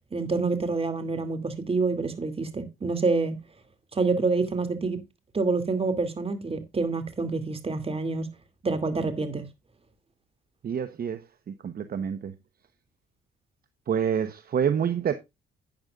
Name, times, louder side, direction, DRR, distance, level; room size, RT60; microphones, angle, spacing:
voice 1, 0.1-3.3 3.9-5.0 5.3-8.3 8.6-9.5, right 3 dB, 30° right, 2.4 m, -27 dB
voice 2, 10.6-12.3 13.9-15.1, right 8 dB, 50° right, 1.0 m, -28 dB
12.0 x 9.0 x 2.4 m
cardioid pair, 90°, 20 cm